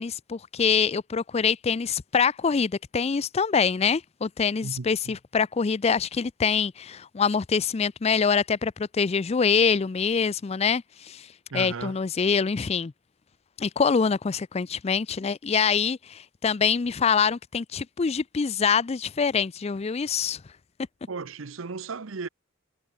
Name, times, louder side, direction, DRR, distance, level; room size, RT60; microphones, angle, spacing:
voice 1, 0.0-11.3 11.5-12.9 13.6-20.4, left 6 dB, 30° left, 0.4 m, -25 dB
voice 2, 4.6-5.2 11.5-12.0 21.1-22.3, right 4 dB, 80° right, 0.8 m, -35 dB
head